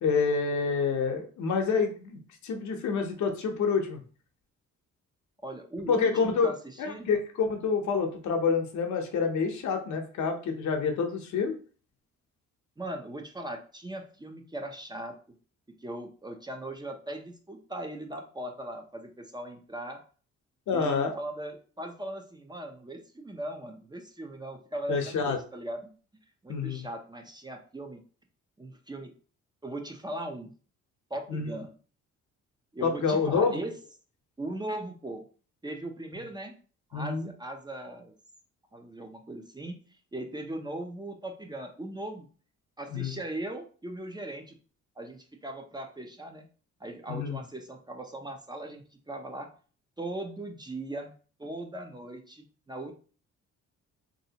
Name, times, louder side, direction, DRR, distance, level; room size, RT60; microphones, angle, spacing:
voice 1, 0.0-4.0 5.9-6.5 6.8-11.6 20.7-21.1 24.9-25.4 26.5-26.9 31.3-31.5 32.8-33.6 36.9-37.3 42.9-43.1 47.1-47.4, left 5 dB, 70° left, 4 dB, 0.8 m, -28 dB
voice 2, 5.4-7.1 12.8-15.1 15.8-20.0 20.7-25.9 26.4-28.0 28.6-29.1 29.6-30.5 31.1-31.7 32.7-33.7 34.4-35.2 35.6-36.6 36.9-38.2 38.7-39.8 40.1-42.3 42.8-44.6 45.0-46.4 46.8-49.5 50.0-51.1 51.4-52.9, right 1 dB, 15° right, 3 dB, 0.5 m, -39 dB
3.2 x 2.7 x 2.8 m, 0.40 s
cardioid pair, 90°, 30 cm